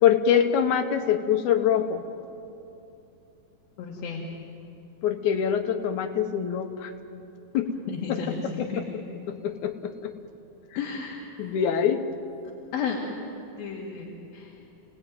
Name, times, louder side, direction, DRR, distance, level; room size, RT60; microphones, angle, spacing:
voice 1, 0.0-2.0 5.0-6.9 7.5-7.7 9.3-10.1 11.4-12.1, left 8 dB, 65° left, 7 dB, 2.5 m, -24 dB
voice 2, 3.8-4.2 7.9-8.8 10.8-11.6 12.7-13.0 13.6-14.6, left 6 dB, 85° left, -3 dB, 4.1 m, -33 dB
29.5 x 18.5 x 9.4 m, 2.9 s
omnidirectional pair, 4.1 m